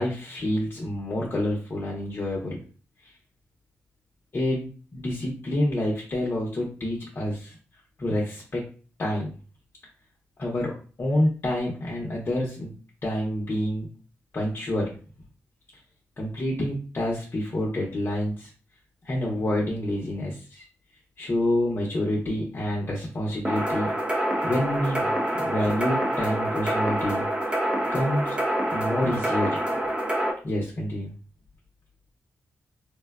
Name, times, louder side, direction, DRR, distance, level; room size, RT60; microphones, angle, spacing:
voice 1, 0.0-2.6 3.0-3.1 4.3-7.5 8.0-8.7 9.0-9.3 10.4-12.7 13.0-13.9 14.3-15.0 16.2-18.5 19.0-20.6 21.2-23.9 24.4-25.1 25.3-27.2 27.9-28.4 28.7-29.6 30.4-31.1, left 1 dB, 45° left, -3 dB, 0.9 m, -28 dB
sound 1, 23.4-30.3, right 1 dB, 20° right, 0.6 m, -26 dB
3.6 x 2.2 x 2.4 m, 0.38 s
wide cardioid pair, 100°, 5 cm